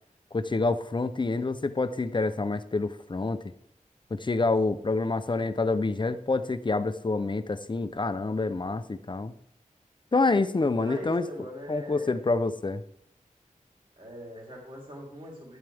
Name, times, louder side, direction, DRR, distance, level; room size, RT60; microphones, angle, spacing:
voice 1, 0.3-3.4 4.1-9.3 10.1-11.2 11.7-12.8, left 3 dB, 35° left, 12 dB, 0.7 m, -27 dB
voice 2, 4.4-4.8 10.2-12.3 13.9-15.6, equal, 35° right, -3 dB, 3.8 m, -42 dB
11.0 x 10.5 x 3.5 m, 0.69 s
wide cardioid pair, 80°, 14 cm